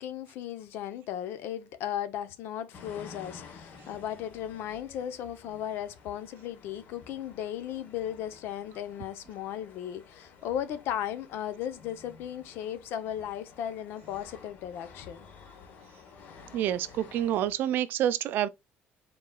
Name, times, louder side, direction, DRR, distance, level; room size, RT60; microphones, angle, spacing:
voice 1, 0.0-15.3, left 10 dB, 70° left, 0.7 m, -36 dB
sound 1, 2.7-17.5, left 5 dB, 55° left, 1.0 m, -52 dB
voice 2, 16.5-18.5, right 11 dB, 60° right, 0.4 m, -28 dB
4.5 x 3.8 x 2.3 m
cardioid pair, 155°, 4 cm